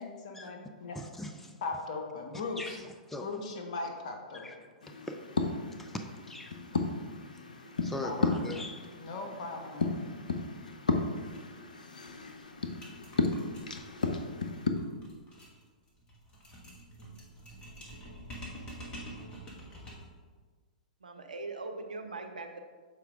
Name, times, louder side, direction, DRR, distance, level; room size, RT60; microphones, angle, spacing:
voice 1, 0.0-1.0 1.6-2.8 3.2-4.4 8.0-8.3 9.0-10.0, left 3 dB, 50° left, 2 dB, 1.1 m, -38 dB
voice 2, 0.9-1.6 2.6-3.3 4.3-4.6 4.9-5.2 5.8-6.6 7.3-7.4 7.8-8.8, left 2 dB, 5° left, 5 dB, 0.4 m, -41 dB
sound 1, 4.8-14.7, left 3 dB, 75° left, 0.6 m, -34 dB
sound 2, 11.3-11.4 11.7-11.8 12.0-20.2, equal, 20° left, 1.5 m, -48 dB
voice 3, 21.0-22.6, right 3 dB, 80° right, 5 dB, 0.7 m, -41 dB
6.8 x 4.5 x 3.6 m, 1.5 s
figure-of-eight pair, 110°, 4 cm